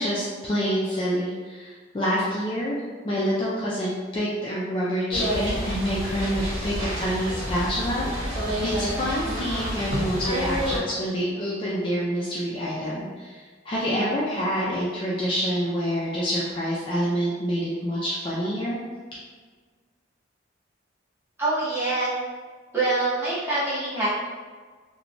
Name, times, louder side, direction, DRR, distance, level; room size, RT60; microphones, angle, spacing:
voice 1, 0.0-18.8, equal, 25° left, -7 dB, 0.3 m, -27 dB
sound 1, 5.1-10.8, equal, 55° right, 1.0 m, -29 dB
voice 2, 21.4-22.1 22.7-24.1, right 2 dB, 10° right, -11 dB, 0.9 m, -25 dB
2.9 x 2.1 x 2.5 m, 1.5 s
head